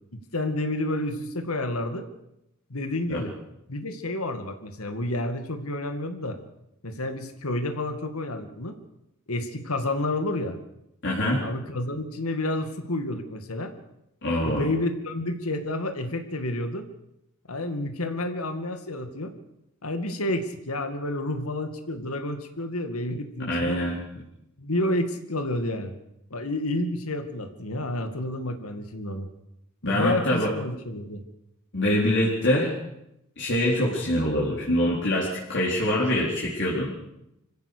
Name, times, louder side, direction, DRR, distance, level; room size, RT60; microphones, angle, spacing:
voice 1, 0.1-2.1 2.7-3.3 3.7-6.4 6.8-8.7 9.3-10.6 11.4-13.7 14.4-16.8 17.5-19.3 19.8-23.8 24.6-25.9 26.3-29.3 29.9-31.2, left 1 dB, 85° left, 7 dB, 2.2 m, -30 dB
voice 2, 11.0-11.5 14.2-14.7 23.5-24.0 29.8-30.5 31.7-32.7 33.4-37.0, left 1 dB, 60° left, -4 dB, 4.3 m, -24 dB
25.5 x 16.5 x 6.8 m, 0.83 s
head